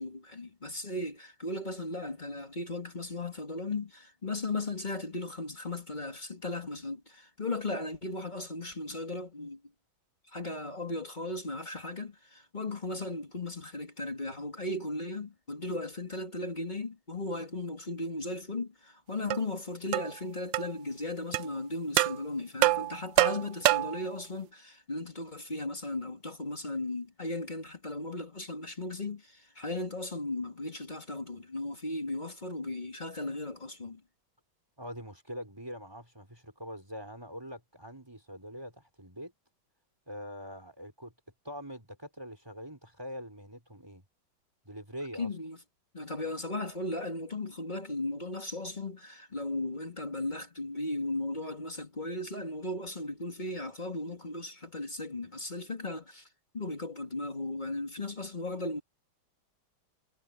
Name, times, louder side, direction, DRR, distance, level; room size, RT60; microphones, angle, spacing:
voice 1, 0.0-9.6 10.3-34.0 45.1-45.6 45.9-56.3 56.5-58.8, left 2 dB, 20° left, 2.2 m, -36 dB
sound 1, 19.3-19.4 19.9-20.1 20.5-20.7 21.3-21.5 22.0-22.2 22.6-24.0, right 17 dB, 75° right, 1.2 m, -25 dB
voice 2, 34.8-39.3 40.1-41.1 41.4-44.0 44.6-45.3, equal, 10° right, 5.1 m, -43 dB
omnidirectional pair, 2.2 m